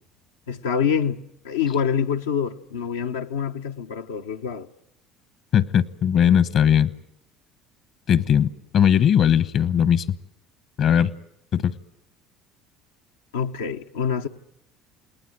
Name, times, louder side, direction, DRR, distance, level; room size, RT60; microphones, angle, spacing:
voice 1, 0.5-4.7 13.3-14.3, left 7 dB, 90° left, 1.0 m, -26 dB
voice 2, 5.5-6.9 8.1-10.0 10.8-11.1 11.5-11.7, left 9 dB, 55° left, 1.1 m, -19 dB
28.5 x 19.5 x 8.0 m
hypercardioid pair, 70°, 0 cm